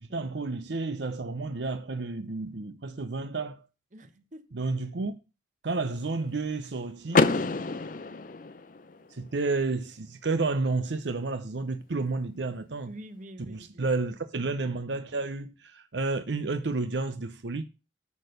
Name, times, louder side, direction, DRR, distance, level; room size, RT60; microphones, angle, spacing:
voice 1, 0.0-3.7 4.5-5.1 5.6-7.3 9.1-12.9 13.4-17.6, right 3 dB, 80° right, 0.7 m, -31 dB
voice 2, 3.9-4.4 12.9-13.9, right 1 dB, 45° right, 1.1 m, -46 dB
Car / Door, 7.1-9.1, left 3 dB, 50° left, 0.6 m, -27 dB
10.5 x 4.4 x 6.5 m
head